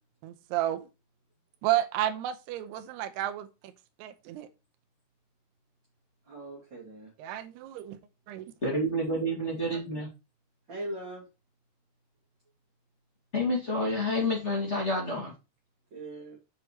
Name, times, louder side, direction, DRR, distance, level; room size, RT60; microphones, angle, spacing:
voice 1, 0.2-0.9 1.6-3.7 4.0-4.5 7.2-8.0 8.3-8.5, right 13 dB, 80° right, 2.7 m, -31 dB
voice 2, 6.3-7.1 10.7-11.2 15.9-16.4, right 1 dB, 35° right, 2.6 m, -40 dB
voice 3, 8.6-10.1 13.3-15.3, left 1 dB, 25° left, 1.7 m, -29 dB
7.9 x 5.9 x 3.1 m
omnidirectional pair, 4.8 m